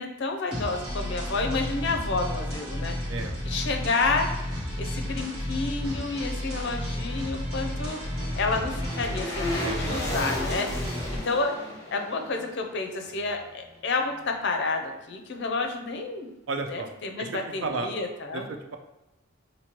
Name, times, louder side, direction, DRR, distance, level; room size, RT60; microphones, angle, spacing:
voice 1, 0.0-3.0 3.4-4.3 4.8-8.0 8.4-10.7 11.2-11.5 11.9-16.3 16.7-18.5, left 3 dB, 55° left, 3 dB, 0.5 m, -30 dB
sound 1, 0.5-11.2, equal, 85° right, 1.2 m, -32 dB
voice 2, 3.1-3.4 9.6-10.3 16.5-16.9 17.2-17.9 18.3-18.8, right 3 dB, 65° right, 5 dB, 0.4 m, -33 dB
sound 2, 6.8-13.9 14.2-14.3, left 1 dB, 15° left, 1.0 m, -36 dB
4.3 x 2.6 x 3.0 m, 0.97 s
head